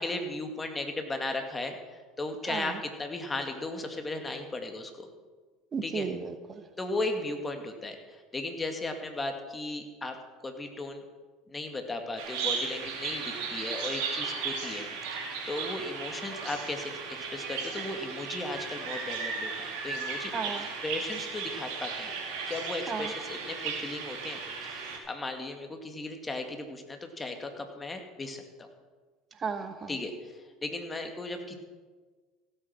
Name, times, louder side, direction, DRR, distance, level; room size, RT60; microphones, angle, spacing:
voice 1, 0.0-5.1 5.8-6.1 6.8-10.2 10.4-11.0 11.5-20.5 20.8-22.1 22.5-28.7 29.9-31.5, left 2 dB, 20° left, 5 dB, 2.2 m, -36 dB
voice 2, 2.5-2.8 5.7-6.7 20.3-20.6 22.9-23.1 29.4-29.9, right 5 dB, 35° right, 9 dB, 1.1 m, -34 dB
Bird vocalization bird call bird song, 12.2-25.0, right 5 dB, 65° right, 2.8 m, -36 dB
16.0 x 8.5 x 6.0 m, 1.4 s
hypercardioid pair, 75°, 0 cm